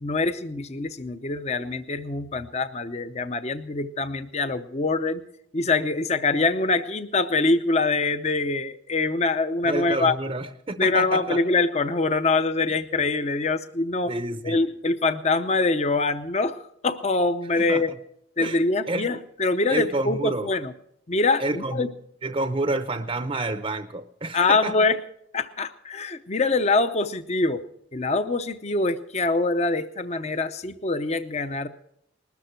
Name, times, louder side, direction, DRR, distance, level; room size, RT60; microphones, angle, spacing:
voice 1, 0.0-5.2 5.5-10.2 10.8-14.1 14.4-17.9 18.4-20.7 21.1-21.9 24.3-25.0 25.3-27.6 27.9-31.7, left 3 dB, 35° left, 11 dB, 0.7 m, -24 dB
voice 2, 9.7-11.4 14.1-14.6 17.6-17.8 18.4-18.6 18.9-19.1 19.7-20.5 21.4-21.9 22.2-24.7, right 2 dB, 30° right, 10 dB, 0.6 m, -29 dB
20.0 x 13.0 x 4.4 m, 0.72 s
head